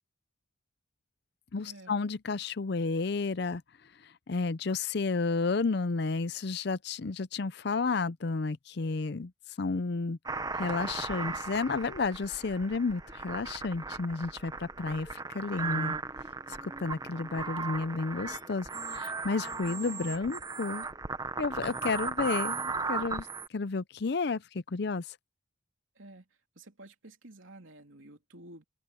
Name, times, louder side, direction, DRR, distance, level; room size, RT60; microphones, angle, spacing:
voice 1, 1.5-3.6 4.0-9.3 9.6-10.2 10.5-16.0 16.5-20.9 21.4-25.2, left 4 dB, 55° left, 0.5 m, -32 dB
sound 1, 10.3-23.5, right 4 dB, 20° right, 0.9 m, -37 dB
voice 2, 25.9-26.3 26.5-28.6, right 1 dB, 80° right, 3.2 m, -51 dB
open air
head